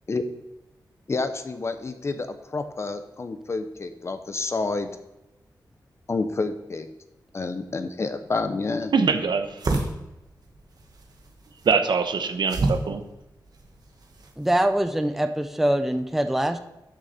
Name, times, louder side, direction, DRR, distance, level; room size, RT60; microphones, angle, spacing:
voice 1, 1.1-4.9 6.1-6.9 7.3-8.9, left 3 dB, 35° left, 9 dB, 0.7 m, -29 dB
sound 1, 8.3-14.6, right 2 dB, 55° right, 1.4 m, -32 dB
voice 2, 8.9-9.6 11.6-13.0, right 5 dB, 75° right, 7 dB, 0.9 m, -23 dB
voice 3, 14.4-16.6, right 1 dB, 5° right, 8 dB, 0.5 m, -23 dB
13.0 x 6.4 x 4.2 m, 0.95 s
wide cardioid pair, 175°, 8 cm